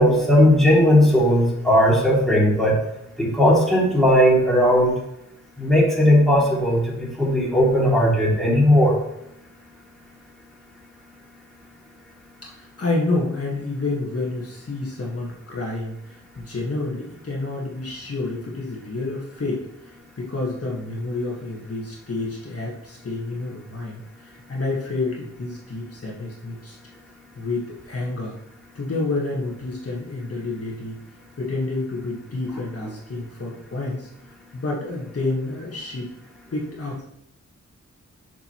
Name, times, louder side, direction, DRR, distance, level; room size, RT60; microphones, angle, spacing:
voice 1, 0.0-2.8 3.2-5.0 5.6-9.0, equal, ahead, -5 dB, 2.7 m, -17 dB
voice 2, 12.4-26.8 27.3-28.3 28.7-31.0 31.4-34.1 34.5-36.1 36.5-37.0, left 2 dB, 50° left, -3 dB, 1.6 m, -29 dB
7.0 x 6.5 x 3.1 m, 0.82 s
wide cardioid pair, 80°, 31 cm